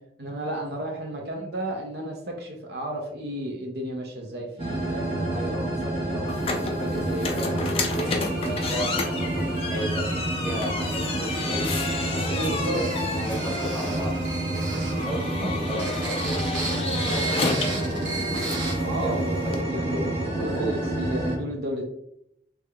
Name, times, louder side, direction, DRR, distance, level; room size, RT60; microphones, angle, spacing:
voice 1, 0.2-5.3 5.8-6.3 12.1-12.8 15.4-15.5 18.8-21.9, right 1 dB, 60° right, 1 dB, 0.5 m, -33 dB
sound 1, 4.6-21.4, right 1 dB, 30° right, 1.1 m, -29 dB
voice 2, 5.3-9.0 9.3-9.4 9.7-10.0 10.4-12.8 13.1-14.2 14.7-20.7, equal, ahead, -6 dB, 1.3 m, -35 dB
sound 2, 6.3-19.6, left 3 dB, 30° left, 0.3 m, -32 dB
sound 3, 12.6-15.0 15.7-18.8, right 3 dB, 85° right, 0.9 m, -34 dB
3.4 x 3.2 x 2.2 m, 0.74 s
head